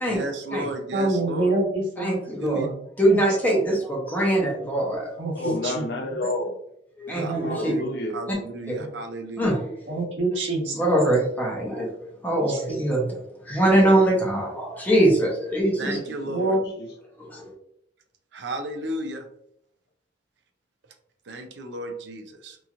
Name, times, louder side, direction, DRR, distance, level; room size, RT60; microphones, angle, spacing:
voice 1, 0.1-1.5 2.4-2.7 7.1-7.3 7.6-7.8 8.1-9.6 15.8-16.6 18.3-19.3 21.3-22.6, right 1 dB, 65° right, 6 dB, 0.5 m, -33 dB
voice 2, 0.9-2.2 2.5-2.7 3.1-3.2 5.2-5.8 7.1-7.6 9.9-10.9 12.5-12.8 16.3-16.6, right 2 dB, 85° right, -6 dB, 1.2 m, -26 dB
voice 3, 2.0-2.6 3.0-5.1 7.0-7.7 8.7-8.8 9.4-10.0 10.7-11.9 12.2-13.1 13.5-16.0 17.2-17.5, right 1 dB, 10° left, -3 dB, 0.8 m, -22 dB
voice 4, 5.3-6.6 7.4-8.2 15.9-16.9, left 1 dB, 60° left, 3 dB, 0.5 m, -30 dB
2.9 x 2.7 x 2.4 m, 0.72 s
head